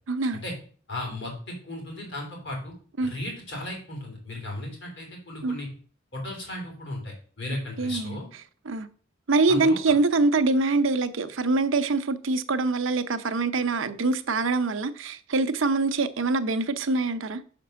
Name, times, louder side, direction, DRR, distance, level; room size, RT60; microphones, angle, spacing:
voice 1, 0.1-0.4 3.0-3.1 5.4-5.6 7.8-8.2 8.7-8.9 9.3-17.4, right 3 dB, 70° right, 0.7 m, -24 dB
voice 2, 0.9-2.7 3.0-5.7 6.1-8.3 9.5-9.8, left 1 dB, 60° left, 3.5 m, -35 dB
6.0 x 5.2 x 6.8 m
head